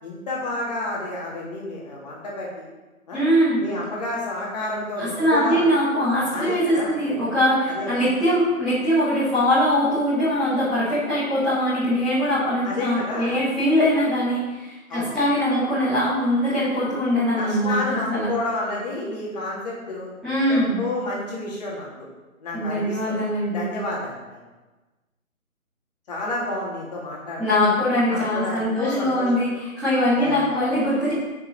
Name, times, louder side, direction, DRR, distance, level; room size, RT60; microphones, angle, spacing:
voice 1, 0.0-2.6 3.1-3.2 3.6-5.7 6.3-6.9 7.7-7.9 12.6-13.3 14.9-15.1 17.4-20.1 20.5-21.9 22.4-23.2 23.5-24.4 26.1-27.5 28.1-29.5 30.2-30.6, left 2 dB, 30° left, -4 dB, 3.0 m, -30 dB
voice 2, 3.1-3.6 5.0-18.3 20.2-20.8 22.5-23.6 27.4-31.1, equal, ahead, -18 dB, 1.1 m, -22 dB
8.4 x 6.9 x 6.2 m, 1.2 s
figure-of-eight pair, 160°, 42 cm